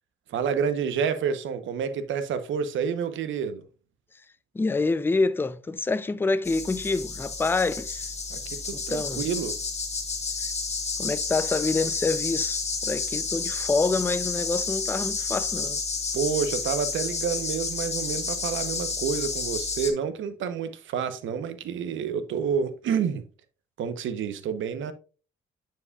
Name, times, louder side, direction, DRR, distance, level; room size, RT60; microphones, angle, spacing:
voice 1, 0.3-3.6 8.3-9.6 16.1-23.2 23.8-24.9, right 7 dB, 75° right, 0.9 m, -29 dB
voice 2, 4.5-8.1 8.7-9.2 11.0-15.8, left 3 dB, 10° left, 0.4 m, -27 dB
sound 1, 6.4-19.9, left 4 dB, 35° left, 1.4 m, -31 dB
9.7 x 4.7 x 2.3 m
cardioid pair, 90°, 20 cm